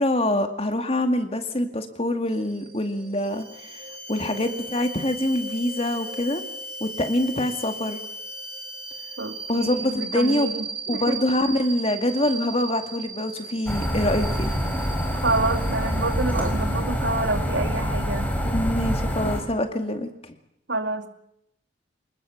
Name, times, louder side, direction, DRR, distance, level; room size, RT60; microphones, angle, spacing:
voice 1, 0.0-6.4 6.8-8.0 9.5-10.6 10.9-14.5 18.4-20.3, left 1 dB, 30° left, 7 dB, 2.2 m, -25 dB
sound 1, 2.3-18.6, right 4 dB, 30° right, 7.7 m, -39 dB
sound 2, 3.2-9.8, left 1 dB, 55° right, 7.6 m, -39 dB
voice 2, 9.2-11.2 15.2-18.3 20.7-21.1, right 2 dB, 75° right, 7 dB, 2.4 m, -28 dB
sound 3, 13.7-19.4, equal, 10° left, 4.1 m, -26 dB
25.5 x 20.5 x 7.3 m, 0.75 s
head